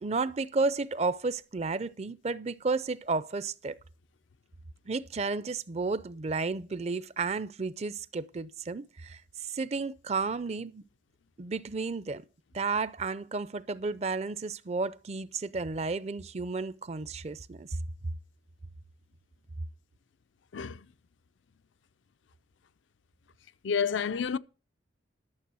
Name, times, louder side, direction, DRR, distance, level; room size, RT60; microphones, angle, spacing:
voice 1, 0.0-3.8 4.9-10.8 11.4-12.3 12.5-17.8, right 4 dB, 35° right, 0.5 m, -32 dB
voice 2, 23.6-24.4, left 6 dB, 80° left, 0.5 m, -29 dB
12.0 x 6.7 x 6.2 m
head